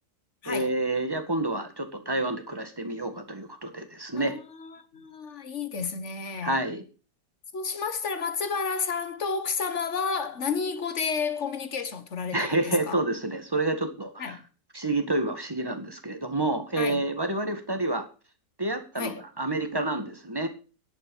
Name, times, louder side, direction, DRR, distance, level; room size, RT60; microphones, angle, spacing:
voice 1, 0.5-4.4 6.4-6.8 12.3-14.4 14.7-18.0 18.6-20.5, right 2 dB, 15° right, 1.9 m, -29 dB
voice 2, 4.1-6.6 7.5-13.0 14.2-14.4 16.8-17.0 19.0-19.2, left 5 dB, 45° left, 1.7 m, -31 dB
10.5 x 9.0 x 7.1 m
omnidirectional pair, 1.8 m